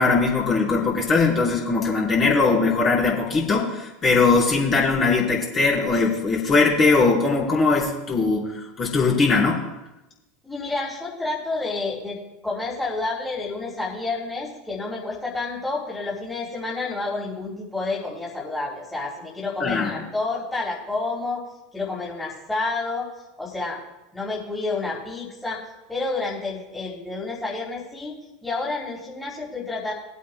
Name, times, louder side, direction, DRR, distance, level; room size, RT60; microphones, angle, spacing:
voice 1, 0.0-8.5 8.8-9.6 19.6-20.0, left 4 dB, 30° left, -5 dB, 4.3 m, -20 dB
voice 2, 10.4-12.2 12.4-21.4 21.7-23.1 23.4-23.8 24.1-25.6 25.9-28.1 28.4-29.9, left 3 dB, 5° left, -7 dB, 3.3 m, -29 dB
22.0 x 8.4 x 2.3 m, 0.96 s
hypercardioid pair, 80°, 0 cm